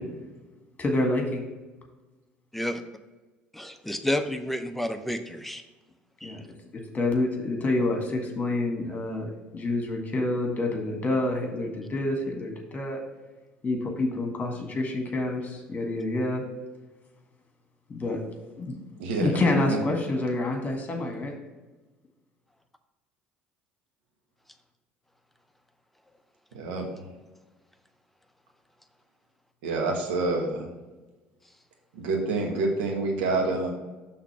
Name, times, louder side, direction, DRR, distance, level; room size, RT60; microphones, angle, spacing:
voice 1, 0.8-1.5 6.2-6.4 6.7-13.0 13.6-16.4 17.9-18.2 18.6-18.8 19.2-21.3, left 2 dB, 30° left, 2 dB, 1.7 m, -27 dB
voice 2, 3.5-5.6 6.2-6.4, left 1 dB, 5° left, 7 dB, 0.6 m, -30 dB
voice 3, 19.0-19.4 19.7-19.8 26.5-27.0 29.6-30.7 31.9-33.7, right 3 dB, 70° right, 1 dB, 1.2 m, -27 dB
6.0 x 3.5 x 5.8 m, 1.2 s
hypercardioid pair, 60°, 5 cm